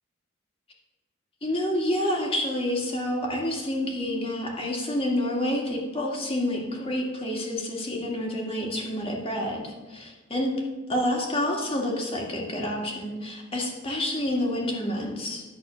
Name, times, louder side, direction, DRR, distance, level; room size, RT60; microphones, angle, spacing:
voice 1, 1.4-10.5 10.9-15.4, left 1 dB, 30° left, -1 dB, 1.8 m, -28 dB
11.5 x 4.2 x 6.9 m, 1.2 s
head